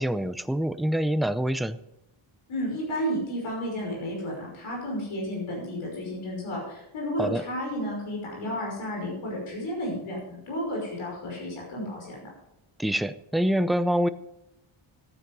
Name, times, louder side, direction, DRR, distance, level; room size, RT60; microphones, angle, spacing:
voice 1, 0.0-1.8 7.2-7.4 12.8-14.1, equal, ahead, 12 dB, 0.5 m, -25 dB
voice 2, 2.5-12.2, equal, 85° left, -2 dB, 5.8 m, -32 dB
14.0 x 9.5 x 5.4 m, 0.87 s
cardioid pair, 90°, 48 cm